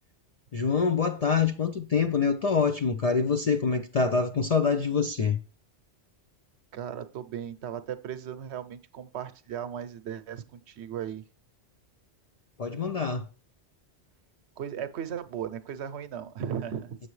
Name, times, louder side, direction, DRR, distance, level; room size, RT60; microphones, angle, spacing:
voice 1, 0.5-5.4 12.6-13.3, left 5 dB, 55° left, 0.4 m, -25 dB
voice 2, 6.7-11.2 14.6-17.0, right 9 dB, 70° right, 0.9 m, -36 dB
7.9 x 5.8 x 3.1 m
omnidirectional pair, 1.2 m